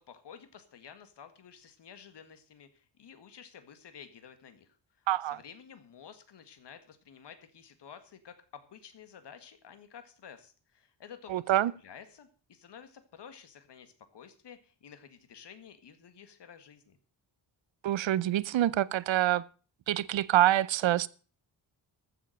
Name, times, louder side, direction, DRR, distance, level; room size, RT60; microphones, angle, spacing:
voice 1, 0.0-17.0, left 7 dB, 60° left, 1.9 m, -52 dB
voice 2, 5.1-5.4 11.3-11.7 17.8-19.4 19.9-21.1, right 13 dB, 80° right, 0.7 m, -26 dB
14.5 x 7.3 x 6.6 m
wide cardioid pair, 175°, 46 cm